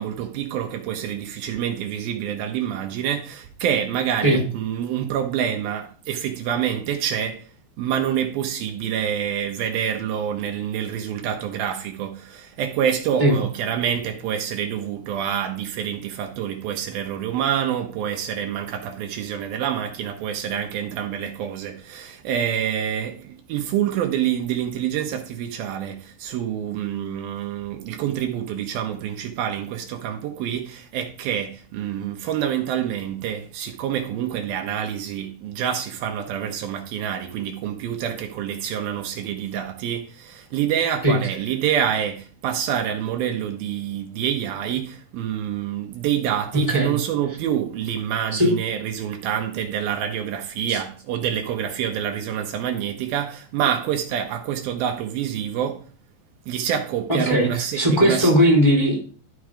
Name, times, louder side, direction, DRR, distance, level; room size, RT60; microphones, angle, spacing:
voice 1, 0.0-55.8 56.5-58.3, right 9 dB, 75° right, 2.5 m, -27 dB
voice 2, 57.1-59.0, equal, 10° left, 2.7 m, -18 dB
12.0 x 4.6 x 4.9 m
omnidirectional pair, 4.5 m